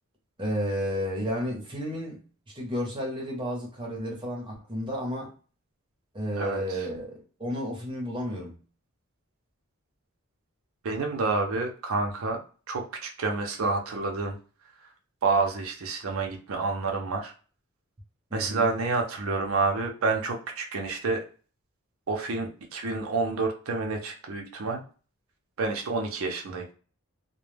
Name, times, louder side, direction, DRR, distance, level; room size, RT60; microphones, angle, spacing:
voice 1, 0.4-5.3 6.1-8.6 18.3-18.7, equal, 25° right, 0.8 m, -32 dB
voice 2, 10.8-12.4 12.7-14.4 15.2-17.3 18.3-21.2 22.1-24.8 25.6-26.6, right 3 dB, 85° right, 0.5 m, -28 dB
2.1 x 2.1 x 3.2 m
head